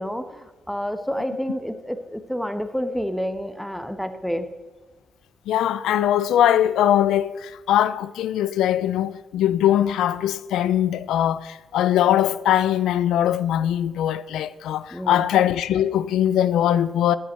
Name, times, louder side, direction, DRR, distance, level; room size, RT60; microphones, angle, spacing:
voice 1, 0.0-4.5 14.9-15.3, equal, ahead, 1.1 m, -29 dB
voice 2, 5.5-17.2, left 11 dB, 85° left, 0.4 m, -21 dB
10.0 x 8.0 x 6.6 m
cardioid pair, 70°, 0 cm